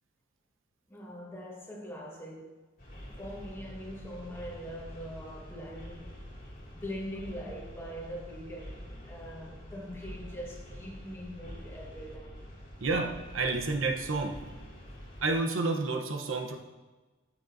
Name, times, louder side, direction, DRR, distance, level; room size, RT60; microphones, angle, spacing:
voice 1, 0.9-2.6 3.2-6.1 6.7-12.5, equal, 10° left, 1.4 m, -42 dB
sound 1, 2.8-15.4, equal, 45° left, 2.2 m, -46 dB
voice 2, 12.8-14.4 15.2-16.6, right 3 dB, 90° right, 0.9 m, -30 dB
12.5 x 6.2 x 2.6 m
head